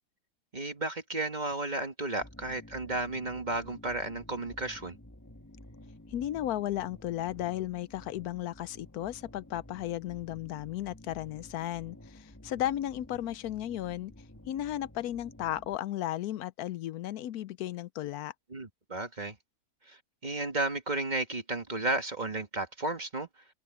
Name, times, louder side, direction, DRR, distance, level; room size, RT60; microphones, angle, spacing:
voice 1, 0.5-5.0 18.5-19.4 19.9-23.3, right 2 dB, 30° right, 1.9 m, -33 dB
sound 1, 2.2-15.8, left 1 dB, 10° left, 2.0 m, -52 dB
voice 2, 6.1-14.1 14.5-18.3, left 13 dB, 80° left, 1.1 m, -35 dB
open air
omnidirectional pair, 1.6 m